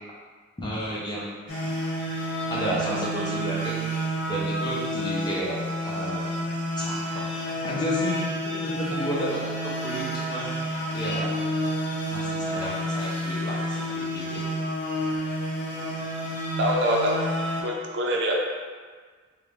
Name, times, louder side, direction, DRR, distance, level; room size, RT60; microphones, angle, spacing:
voice 1, 0.6-1.3 2.5-3.8 4.3-5.6 5.8-6.3 6.8-7.0 7.6-10.5 10.9-11.4 12.1-14.4, equal, 20° left, -6 dB, 0.6 m, -31 dB
sound 1, 1.5-17.6, equal, 85° left, 1.1 m, -29 dB
voice 2, 16.6-17.2 17.6-18.4, equal, 65° right, 0 dB, 0.5 m, -24 dB
3.7 x 2.5 x 3.2 m, 1.5 s
head